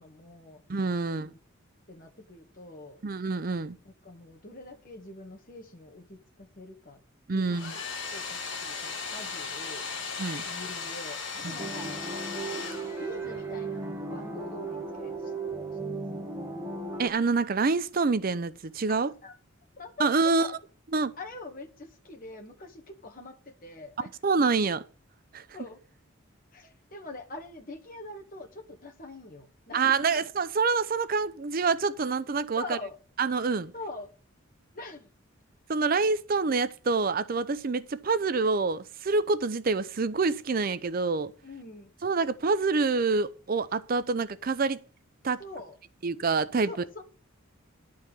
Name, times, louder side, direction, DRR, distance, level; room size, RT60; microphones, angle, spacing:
voice 1, 0.0-0.6 1.0-1.4 1.9-3.0 3.8-7.0 7.3-7.7 8.1-9.9 10.5-12.0 13.0-15.3 15.9-16.3 19.2-19.4 19.8-20.6 21.2-24.1 25.5-25.8 26.5-30.3 32.6-33.0 33.7-34.1 34.7-35.1 41.4-41.9 45.4-45.8 46.7-47.0, left 2 dB, 40° left, 2.0 m, -44 dB
voice 2, 0.7-1.3 3.0-3.8 7.3-7.7 10.2-10.4 11.4-11.5 17.0-19.1 20.0-20.5 20.9-21.1 24.2-24.8 25.3-25.4 29.7-32.8 33.2-33.7 35.7-41.3 42.0-44.8 45.2-45.4 46.0-46.7, right 4 dB, 45° right, 0.5 m, -26 dB
Domestic sounds home sounds, 7.5-13.4, left 5 dB, 60° left, 2.6 m, -37 dB
sound 1, 11.6-17.1, right 3 dB, 10° right, 2.1 m, -36 dB
11.5 x 4.7 x 8.2 m
head